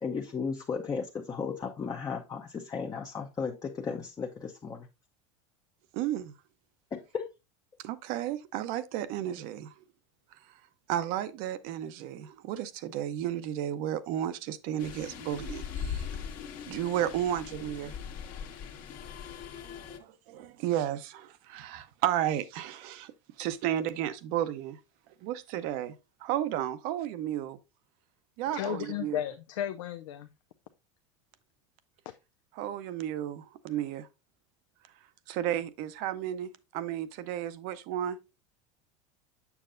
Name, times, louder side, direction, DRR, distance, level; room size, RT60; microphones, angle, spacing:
voice 1, 0.0-4.9 6.9-7.3, left 5 dB, 25° left, 0.7 m, -35 dB
voice 2, 5.9-6.3 7.8-9.8 10.9-16.1 16.7-17.9 19.6-23.1 23.4-24.8 25.2-25.9 26.2-27.6 28.4-29.2 32.6-34.1 35.3-38.2, right 11 dB, 60° right, 0.7 m, -33 dB
sound 1, 14.8-20.0, left 7 dB, 55° left, 1.4 m, -40 dB
voice 3, 28.5-30.3, left 10 dB, 85° left, 0.5 m, -34 dB
7.0 x 6.5 x 2.5 m
supercardioid pair, 105°, 16 cm